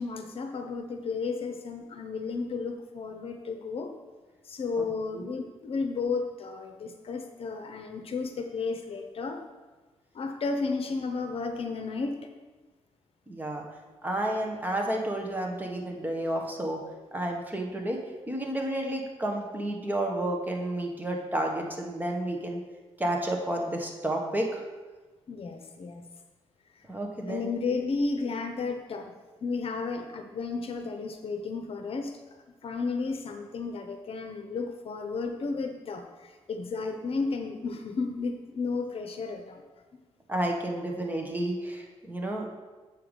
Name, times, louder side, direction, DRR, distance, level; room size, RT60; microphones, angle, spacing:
voice 1, 0.0-3.9 4.4-9.4 10.1-12.2 25.3-26.0 27.2-29.1 29.4-32.1 32.6-39.6, left 4 dB, 55° left, 5 dB, 0.9 m, -33 dB
voice 2, 13.3-13.6 14.0-16.8 17.1-22.6 23.0-24.7 26.9-27.5 40.3-42.5, right 1 dB, 15° right, 1 dB, 1.3 m, -31 dB
7.7 x 5.8 x 5.1 m, 1.2 s
cardioid pair, 105°, 12 cm